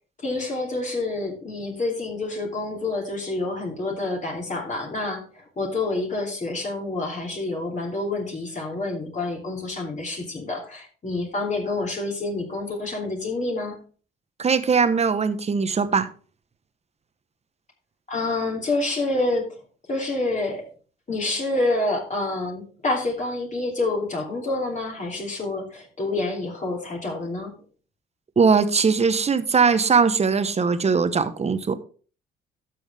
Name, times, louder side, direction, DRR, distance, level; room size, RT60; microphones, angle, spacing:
voice 1, 0.2-13.8 18.1-19.5 19.9-20.6 21.1-27.5, left 2 dB, 40° left, 3.0 m, -28 dB
voice 2, 14.4-16.1 28.4-31.7, right 5 dB, 35° right, 1.0 m, -20 dB
12.5 x 6.3 x 3.5 m
cardioid pair, 90°, 20 cm